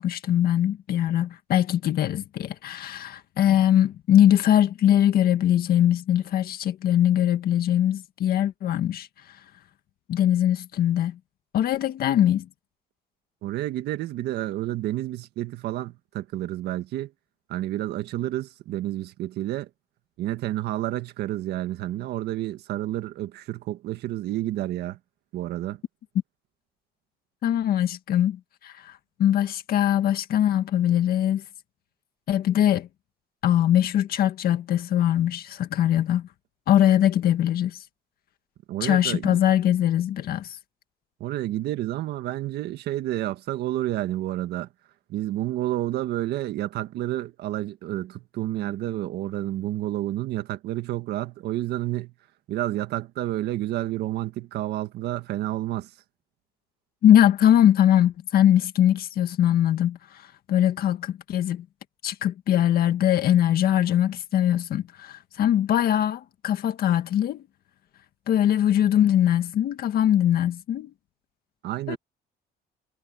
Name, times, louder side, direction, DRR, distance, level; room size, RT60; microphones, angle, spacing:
voice 1, 0.0-9.1 10.1-11.2 11.5-12.5 27.4-31.4 32.3-32.9 33.4-36.3 36.7-37.8 38.8-40.6 57.0-61.7 62.0-67.4 68.3-70.9 71.9-72.0, left 11 dB, 65° left, 1.8 m, -22 dB
voice 2, 13.4-17.1 17.5-19.7 20.2-25.0 25.3-25.8 38.7-39.4 41.2-44.7 45.1-52.1 52.5-55.9 71.6-72.0, right 14 dB, 75° right, 1.8 m, -30 dB
cardioid pair, 110°, 17 cm